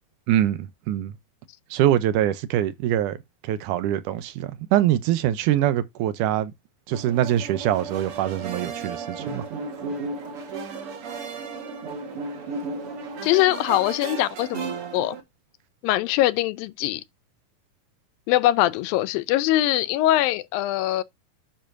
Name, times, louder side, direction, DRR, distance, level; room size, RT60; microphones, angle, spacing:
voice 1, 0.3-1.1 1.7-3.2 3.4-6.5 6.9-9.5, right 12 dB, 75° right, 2.1 m, -23 dB
sound 1, 6.9-15.2, right 4 dB, 45° right, 2.3 m, -34 dB
voice 2, 13.2-14.6 14.9-15.2 15.8-17.0 18.3-21.0, left 15 dB, 85° left, 2.5 m, -22 dB
10.5 x 5.4 x 2.7 m
omnidirectional pair, 4.1 m